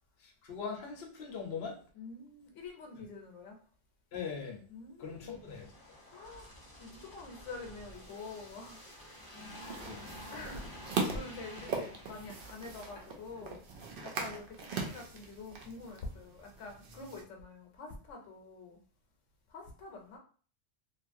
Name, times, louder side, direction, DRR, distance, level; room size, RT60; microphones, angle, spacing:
voice 1, 0.2-1.8 4.1-4.6 5.0-5.7 9.8-10.1 14.2-14.3, left 6 dB, 60° left, 0 dB, 0.9 m, -41 dB
voice 2, 1.9-3.6 4.7-5.5 6.1-8.8 9.4-9.7 10.3-13.6 14.0-18.8 19.5-20.2, left 3 dB, 90° left, 2 dB, 1.0 m, -46 dB
sound 1, 5.1-13.4 13.8-13.9, equal, 20° left, 0.7 m, -50 dB
sound 2, 9.6-17.2, right 4 dB, 60° right, 0.7 m, -40 dB
2.8 x 2.4 x 2.5 m, 0.42 s
omnidirectional pair, 1.2 m